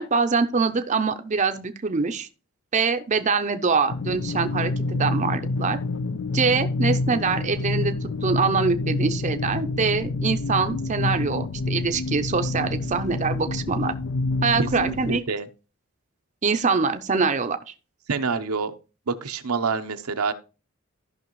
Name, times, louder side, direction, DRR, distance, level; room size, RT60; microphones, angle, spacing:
voice 1, 0.0-2.3 2.7-5.8 6.3-13.9 14.4-15.2 16.4-17.7, right 4 dB, 35° right, 7 dB, 0.6 m, -24 dB
sound 1, 3.9-15.2, left 3 dB, 55° left, 0.4 m, -27 dB
voice 2, 14.6-15.5 18.1-18.7 19.1-20.3, right 4 dB, 80° right, 8 dB, 0.8 m, -27 dB
14.5 x 5.7 x 3.0 m, 0.32 s
head